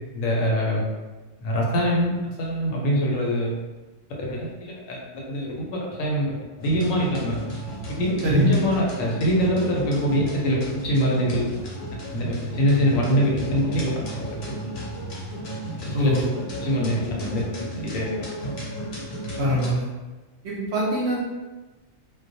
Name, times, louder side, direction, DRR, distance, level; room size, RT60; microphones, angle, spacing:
voice 1, 0.1-0.8 1.4-3.5 4.3-5.0 5.3-6.3 6.6-7.3 8.0-11.5 12.1-13.9 14.2-14.3 15.9-16.1 16.6-17.0 17.3-18.1, equal, 85° left, -2 dB, 1.0 m, -24 dB
sound 1, 6.6-19.7, equal, 60° left, 0.8 m, -34 dB
voice 2, 8.2-8.6 15.9-16.3 19.4-19.9 20.4-21.3, equal, 65° right, -5 dB, 0.7 m, -23 dB
2.2 x 2.2 x 2.6 m, 1.2 s
omnidirectional pair, 1.4 m